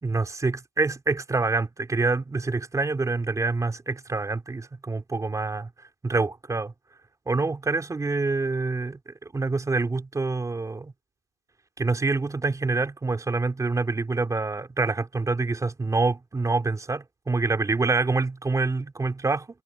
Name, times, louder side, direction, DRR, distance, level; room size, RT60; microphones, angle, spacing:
voice 1, 0.0-5.7 6.0-6.7 7.3-10.9 11.8-19.5, right 3 dB, 5° right, 3.2 m, -26 dB
supercardioid pair, 155°, 49 cm